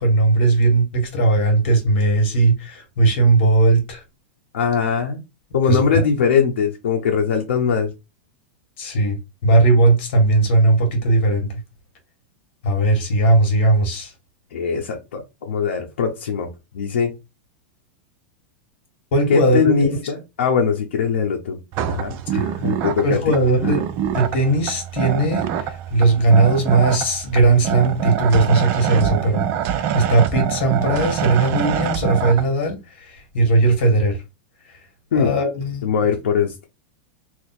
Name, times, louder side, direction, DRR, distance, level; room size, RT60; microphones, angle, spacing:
voice 1, 0.0-4.0 5.7-6.0 8.8-11.6 12.6-14.1 19.1-20.0 22.3-22.5 23.0-23.8 24.1-29.5 29.7-34.2 34.7-34.8 35.1-35.8, right 2 dB, 65° left, 1.7 m, -18 dB
voice 2, 4.5-5.2 5.5-7.9 14.5-17.1 19.3-21.6 21.9-23.2 23.6-23.7 35.1-35.3 35.8-36.7, left 6 dB, 85° left, 0.8 m, -21 dB
sound 1, 21.7-32.4, right 9 dB, 40° right, 0.5 m, -25 dB
2.9 x 2.5 x 4.1 m
supercardioid pair, 150°, 7 cm